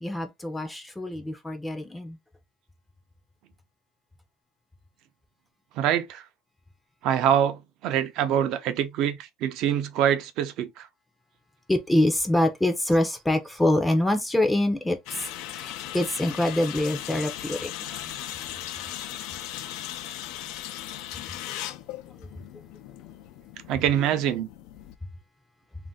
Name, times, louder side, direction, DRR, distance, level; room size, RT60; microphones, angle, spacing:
voice 1, 0.0-2.2 11.7-17.7, left 1 dB, 10° left, 0.5 m, -25 dB
voice 2, 5.8-6.2 7.0-10.9 23.7-24.5, right 10 dB, 60° right, 0.5 m, -25 dB
sound 1, 15.1-25.0, left 12 dB, 70° left, 0.3 m, -38 dB
2.5 x 2.1 x 3.6 m
cardioid pair, 140°, 0 cm